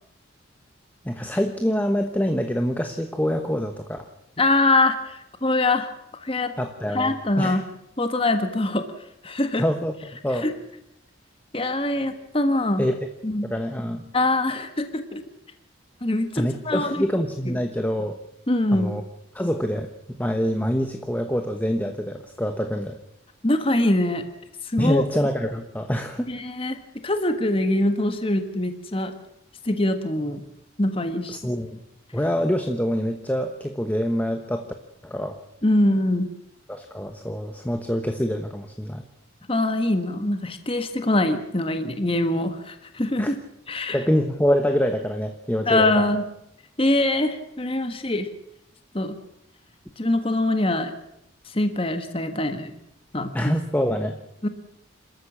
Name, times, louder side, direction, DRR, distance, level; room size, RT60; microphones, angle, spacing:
voice 1, 1.0-4.1 6.6-7.6 9.6-10.5 12.8-12.9 13.4-14.0 16.4-18.2 18.7-19.0 19.3-19.9 20.2-23.0 24.8-26.3 31.3-31.7 32.1-34.7 35.0-35.4 36.7-39.0 43.2-43.3 43.9-45.9 53.3-54.2, equal, 10° left, 6 dB, 1.1 m, -25 dB
voice 2, 4.4-6.5 6.9-7.6 8.0-8.9 9.2-9.6 10.4-10.5 11.5-12.9 13.2-13.5 14.1-15.2 16.0-16.9 17.4-17.6 18.5-18.9 23.4-24.2 24.6-25.0 26.3-29.1 29.6-30.4 30.8-31.4 35.6-36.3 39.5-43.4 43.7-44.0 45.7-46.2 46.8-48.3 48.9-49.2 50.0-50.9 51.5-52.7 53.1-53.5 54.4-54.5, left 1 dB, 30° left, 8 dB, 1.4 m, -23 dB
28.5 x 13.5 x 7.3 m, 0.80 s
head